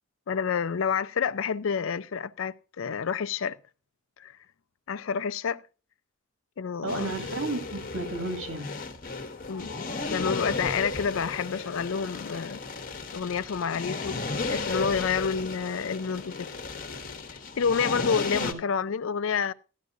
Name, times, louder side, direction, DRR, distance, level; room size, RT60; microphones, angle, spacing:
voice 1, 0.3-3.6 4.2-4.4 4.9-5.6 6.6-7.1 9.5-9.8 10.1-12.6 13.1-16.5 17.6-19.5, left 6 dB, 65° left, 0.4 m, -29 dB
voice 2, 6.8-8.7 18.4-18.6, right 2 dB, 70° right, 1.9 m, -33 dB
sound 1, 6.9-18.5, left 3 dB, 40° left, 1.0 m, -34 dB
12.5 x 12.0 x 2.6 m
head